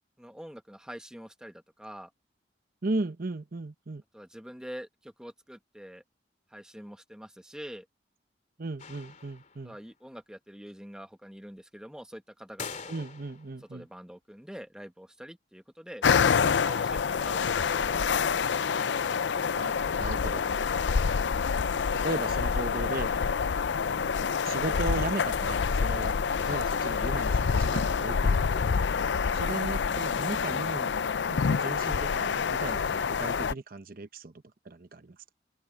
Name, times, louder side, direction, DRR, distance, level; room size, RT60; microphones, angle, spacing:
voice 1, 0.2-2.1 4.1-6.0 6.5-7.9 9.6-13.0 13.7-18.7 22.1-22.2, equal, 5° right, 1.2 m, -45 dB
voice 2, 2.8-4.0 8.6-9.8 12.9-13.9 19.6-20.5 21.9-23.1 24.4-28.6 29.3-30.9 31.3-34.3 34.6-35.2, right 2 dB, 50° right, 0.8 m, -36 dB
sound 1, 8.8-9.8 12.6-13.6, left 5 dB, 40° left, 3.2 m, -43 dB
sound 2, 16.0-33.5, left 6 dB, 75° left, 0.5 m, -27 dB
open air
head